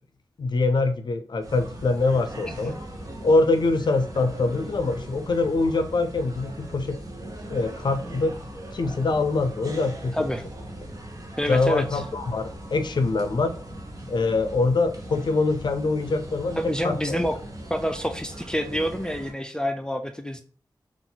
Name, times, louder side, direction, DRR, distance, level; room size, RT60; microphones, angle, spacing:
voice 1, 0.4-2.8 3.2-7.0 7.5-8.4 8.7-10.3 11.5-13.6 14.1-17.2, left 3 dB, 65° left, 8 dB, 0.5 m, -24 dB
sound 1, 1.4-19.3, right 1 dB, 45° right, 0.8 m, -39 dB
voice 2, 10.1-10.4 11.4-12.0 16.6-17.4 17.7-20.4, equal, 10° left, 6 dB, 0.4 m, -27 dB
4.0 x 2.4 x 3.9 m, 0.42 s
wide cardioid pair, 100°, 8 cm